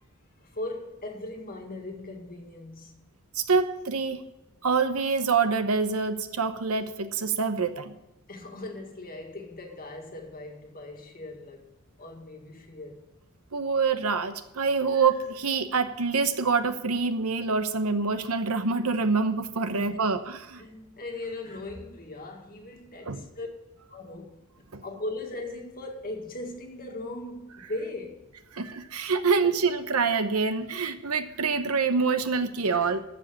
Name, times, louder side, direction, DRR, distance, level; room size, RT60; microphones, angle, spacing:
voice 1, 0.4-3.0 8.3-11.7 12.0-13.0 19.7-20.2 20.6-23.5 23.9-24.3 24.8-28.2 32.7-33.0, left 2 dB, 45° left, 1.9 m, -39 dB
voice 2, 3.3-4.2 4.6-7.9 13.5-20.6 23.1-23.2 24.7-24.8 28.5-33.0, right 4 dB, 80° right, 1.0 m, -26 dB
13.5 x 5.2 x 8.5 m
head